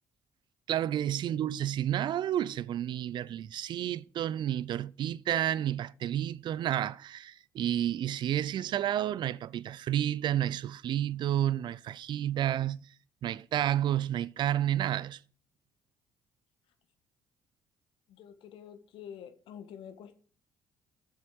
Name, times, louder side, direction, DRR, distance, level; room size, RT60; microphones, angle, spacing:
voice 1, 0.7-12.9 13.2-15.2, right 11 dB, 50° right, 0.5 m, -30 dB
voice 2, 18.1-20.2, left 8 dB, 60° left, 1.3 m, -47 dB
13.0 x 7.6 x 4.8 m
figure-of-eight pair, 50°, 10 cm